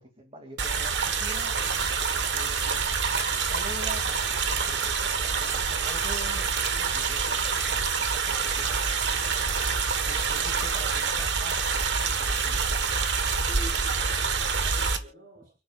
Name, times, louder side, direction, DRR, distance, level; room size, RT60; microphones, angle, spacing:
voice 1, 0.0-4.8 5.0-9.6 10.1-12.8 13.8-13.9, right 1 dB, 30° right, 3 dB, 2.6 m, -46 dB
sound 1, 0.6-15.0, right 5 dB, 70° right, 1.5 m, -27 dB
voice 2, 13.4-15.5, right 3 dB, 55° right, 0 dB, 5.6 m, -47 dB
29.5 x 10.5 x 2.5 m, 0.33 s
head